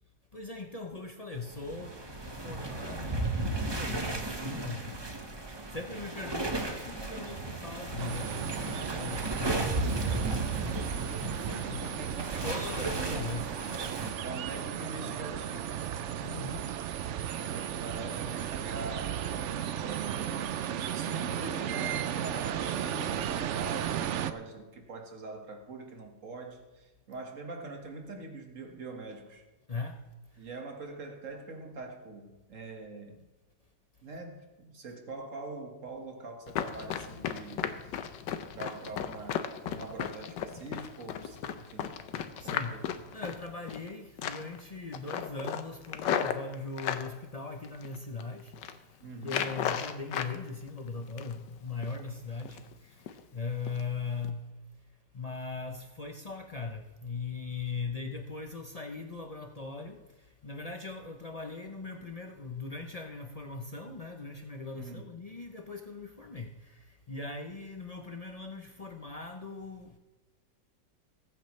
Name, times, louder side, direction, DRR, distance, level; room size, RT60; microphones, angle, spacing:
voice 1, 0.3-5.3 5.7-11.4 11.7-11.8 12.4-13.5 16.2-16.7 29.7-30.0 30.3-30.5 42.4-42.7 43.1-54.5 55.1-70.0, left 4 dB, 50° left, 0.4 m, -40 dB
sound 1, 1.5-14.1, right 2 dB, 15° right, 1.0 m, -35 dB
sound 2, 8.0-24.3, right 9 dB, 75° right, 0.6 m, -35 dB
voice 2, 11.2-12.5 13.0-13.4 14.2-16.0 17.3-19.2 19.6-29.4 30.4-33.2 34.0-38.0 38.5-42.0 42.4-42.9 49.0-49.5 64.7-65.1, right 3 dB, 45° right, 2.0 m, -43 dB
Run, 36.5-43.9 44.2-44.6 44.9-47.1 47.6-48.2 48.5-48.8 49.2-50.4 50.7-51.5 51.8-52.0 52.4-52.7 53.1-53.2 53.7-53.8 54.2-54.3, left 9 dB, 85° left, 1.4 m, -35 dB
21.0 x 8.9 x 3.2 m
omnidirectional pair, 1.9 m